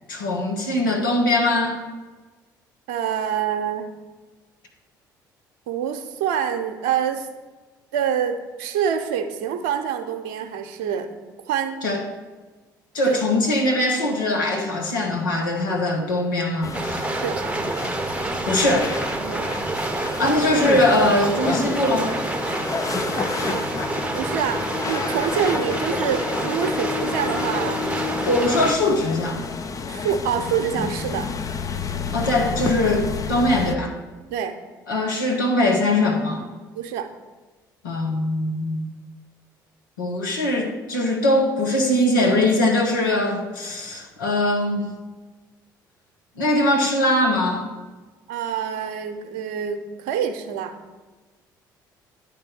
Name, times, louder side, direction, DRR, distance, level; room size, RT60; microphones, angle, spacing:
voice 1, 0.1-1.8 11.8-12.0 12.9-17.1 18.5-18.9 20.2-22.2 28.2-29.4 32.1-33.9 34.9-36.5 37.8-38.9 40.0-45.0 46.4-47.7, left 1 dB, 80° left, 1 dB, 1.0 m, -21 dB
voice 2, 2.9-3.9 5.7-7.3 7.9-11.1 11.5-11.8 13.1-13.2 17.2-17.4 19.2-19.5 23.5-23.6 24.1-27.8 29.9-31.3 34.3-34.5 36.7-37.1 48.3-50.7, right 8 dB, 70° right, 7 dB, 0.7 m, -26 dB
sound 1, 16.6-33.8, left 5 dB, 35° left, 0.5 m, -30 dB
sound 2, 16.7-28.8, right 2 dB, 10° right, 0.8 m, -28 dB
9.8 x 3.4 x 6.1 m, 1.3 s
figure-of-eight pair, 55°, 11 cm